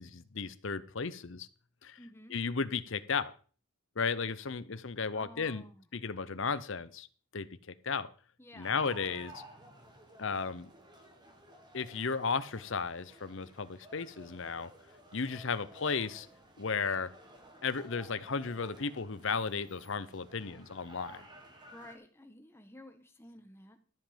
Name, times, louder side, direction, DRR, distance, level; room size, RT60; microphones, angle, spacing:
voice 1, 0.0-1.5 1.8-2.0 2.3-3.3 4.0-5.7 5.9-7.1 7.3-8.1 8.6-9.4 10.2-10.7 11.7-14.7 15.1-16.3 16.6-17.1 17.6-21.2, left 5 dB, 55° left, 0.7 m, -34 dB
voice 2, 2.0-2.4 5.1-5.9 8.4-8.7 21.7-23.8, left 1 dB, 10° left, 1.3 m, -53 dB
sound 1, 8.6-22.0, right 1 dB, 20° right, 1.8 m, -54 dB
13.5 x 7.5 x 5.2 m
head